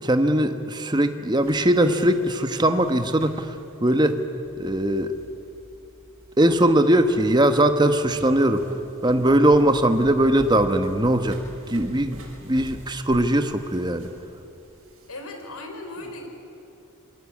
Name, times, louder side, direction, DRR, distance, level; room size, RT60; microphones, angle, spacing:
voice 1, 0.0-3.5 3.8-4.2 4.6-5.1 6.4-8.7 9.0-11.4 11.7-12.2 12.5-14.1, right 1 dB, 20° right, 8 dB, 1.2 m, -20 dB
sound 1, 1.4-15.1, equal, 70° right, 5.3 m, -45 dB
voice 2, 15.1-16.3, left 2 dB, 85° left, 4 dB, 4.2 m, -37 dB
26.5 x 22.5 x 8.6 m, 2.7 s
head